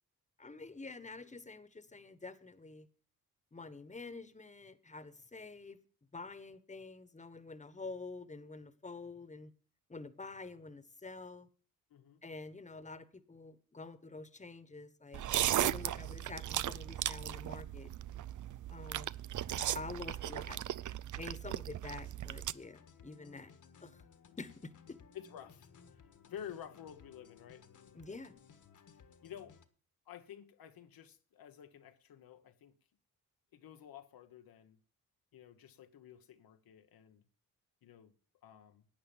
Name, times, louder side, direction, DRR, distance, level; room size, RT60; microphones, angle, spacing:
voice 1, 0.4-2.9 3.5-5.8 6.1-9.5 9.9-11.5 12.2-15.2 15.5-17.9 18.7-19.1 19.7-20.6 21.1-23.5 23.8-24.0 24.4-24.7 27.9-28.3, left 3 dB, 20° left, 1.4 m, -47 dB
voice 2, 11.9-12.2 19.7-19.9 25.1-25.7 26.3-27.7 29.2-29.6 30.1-32.7 33.5-34.8 35.3-37.2 37.8-38.1 38.4-38.9, left 9 dB, 75° left, 1.1 m, -51 dB
sound 1, 15.1-22.5, right 12 dB, 55° right, 0.6 m, -37 dB
sound 2, 22.3-29.6, left 6 dB, 55° left, 1.6 m, -60 dB
12.0 x 8.9 x 7.3 m
cardioid pair, 65°, 36 cm